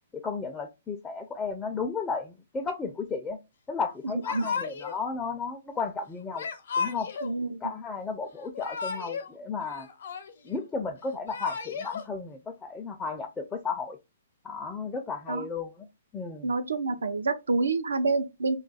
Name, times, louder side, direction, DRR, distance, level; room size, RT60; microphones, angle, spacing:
voice 1, 0.1-3.4 3.7-6.5 6.8-7.1 7.6-9.9 10.4-14.0 14.4-15.9 16.1-16.5, left 4 dB, 15° left, 0.4 m, -34 dB
Yell / Crying sobbing, 4.2-5.0 6.3-7.3 8.4-9.3 9.6-10.6 11.1-12.0, left 5 dB, 65° left, 0.7 m, -34 dB
voice 2, 7.2-7.6 15.3-15.4 16.4-18.6, right 3 dB, 85° right, 0.5 m, -27 dB
2.3 x 2.2 x 3.9 m
hypercardioid pair, 140°, 0 cm